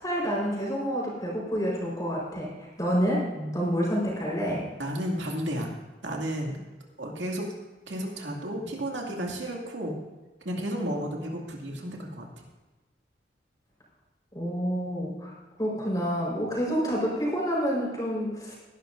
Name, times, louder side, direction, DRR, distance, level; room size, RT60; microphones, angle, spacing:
voice 1, 0.0-2.5 2.8-3.2 3.5-4.6 14.3-15.3 15.6-18.5, equal, 20° left, -4 dB, 4.5 m, -28 dB
voice 2, 3.3-3.7 4.8-5.7 6.0-6.6 7.0-7.5 7.9-10.0 10.4-12.4, equal, 80° right, 0 dB, 2.4 m, -32 dB
19.5 x 11.0 x 2.6 m, 1.2 s
head